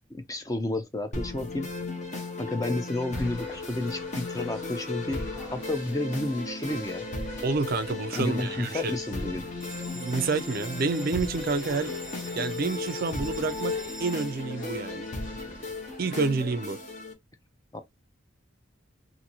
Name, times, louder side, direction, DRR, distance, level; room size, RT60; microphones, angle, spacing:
voice 1, 0.3-1.7 2.4-5.2 5.5-7.1 8.2-9.4 17.7-17.8, left 2 dB, 20° left, 0.4 m, -31 dB
sound 1, 1.1-17.1, left 3 dB, 40° left, 0.8 m, -35 dB
sound 2, 3.1-15.7, left 1 dB, 80° left, 1.1 m, -49 dB
voice 2, 7.4-9.0 9.9-11.9 12.4-15.0 16.0-16.8, right 4 dB, 50° right, 0.4 m, -29 dB
Bell, 9.6-16.6, equal, 5° right, 0.9 m, -46 dB
2.7 x 2.6 x 2.8 m
head